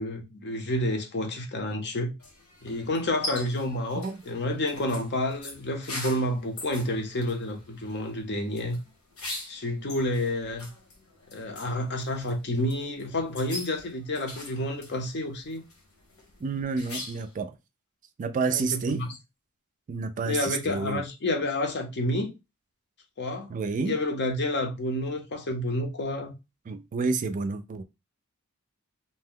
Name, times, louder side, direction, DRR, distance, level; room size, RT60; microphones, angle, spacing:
voice 1, 0.0-2.1 2.6-8.8 9.5-10.7 11.3-15.6 18.5-19.1 20.2-22.3 23.2-23.5 23.8-26.3, left 1 dB, 55° left, 0.7 m, -29 dB
sound 1, 2.2-17.4, left 2 dB, 75° left, 1.2 m, -43 dB
voice 2, 16.4-17.6 18.2-19.0 19.9-21.0 23.5-24.0 26.7-27.8, right 4 dB, 35° right, 0.3 m, -29 dB
2.7 x 2.1 x 3.6 m
head